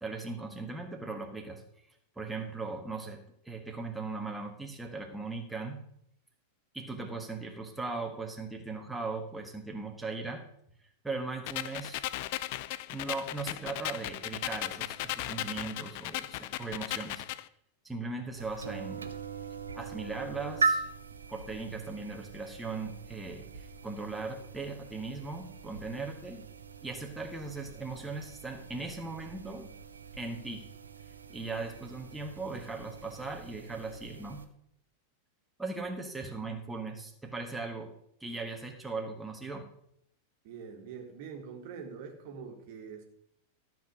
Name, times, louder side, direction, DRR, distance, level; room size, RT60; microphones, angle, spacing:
voice 1, 0.0-1.6 2.1-3.2 3.4-5.8 6.7-10.4 10.8-12.1 12.9-17.2 17.8-19.0 19.7-20.9 21.3-26.4 26.8-29.7 30.2-30.7 31.3-34.4 35.6-37.9 38.2-39.7, right 3 dB, 5° right, 1 dB, 1.5 m, -38 dB
sound 1, 11.5-17.4, left 16 dB, 50° left, 0.5 m, -37 dB
sound 2, 18.3-34.4, right 5 dB, 75° right, 0.9 m, -40 dB
voice 2, 40.4-43.0, right 6 dB, 50° right, 4 dB, 1.8 m, -44 dB
13.0 x 6.1 x 6.2 m, 0.72 s
figure-of-eight pair, 90°, 0 cm